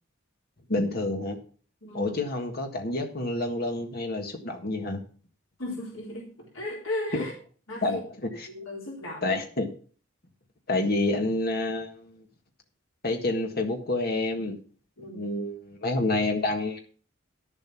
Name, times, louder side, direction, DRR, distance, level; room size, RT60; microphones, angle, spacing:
voice 1, 0.7-1.4 1.9-5.0 7.1-7.2 7.8-8.5 9.2-9.7 10.7-12.2 13.0-14.6 15.1-16.8, left 2 dB, 50° left, 4 dB, 1.7 m, -28 dB
voice 2, 1.8-2.2 5.6-7.3 7.7-8.0 8.3-9.4 15.0-15.3, left 1 dB, 80° left, -2 dB, 3.7 m, -36 dB
11.5 x 7.4 x 5.9 m, 0.40 s
head